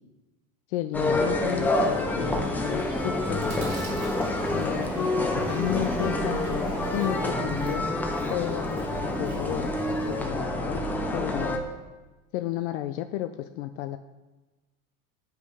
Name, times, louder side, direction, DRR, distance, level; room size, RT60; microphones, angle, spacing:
voice 1, 0.7-3.7 4.5-7.8 8.3-10.8 11.1-11.6 12.3-14.0, left 13 dB, 60° left, 9 dB, 0.5 m, -32 dB
sound 1, 0.9-11.6, left 1 dB, 5° left, 0.4 m, -27 dB
Train braking, 1.4-8.4, right 5 dB, 30° right, 1.2 m, -46 dB
Chewing mastication, 3.0-10.3, right 3 dB, 55° right, 2.6 m, -46 dB
8.6 x 8.4 x 5.3 m, 1.2 s
supercardioid pair, 165°, 39 cm